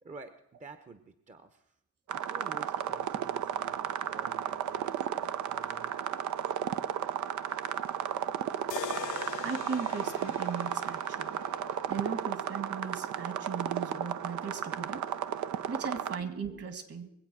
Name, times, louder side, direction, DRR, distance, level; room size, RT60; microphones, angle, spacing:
voice 1, 0.0-1.6 2.1-5.9, right 3 dB, 25° right, 10 dB, 0.9 m, -50 dB
sound 1, 2.1-16.2, right 10 dB, 70° right, 0.7 m, -34 dB
sound 2, 8.7-12.8, left 14 dB, 90° left, 0.5 m, -43 dB
voice 2, 9.4-11.4 11.9-15.0 15.7-17.1, right 5 dB, 50° right, 11 dB, 2.0 m, -37 dB
22.0 x 8.1 x 6.2 m, 0.79 s
cardioid pair, 90°, 30 cm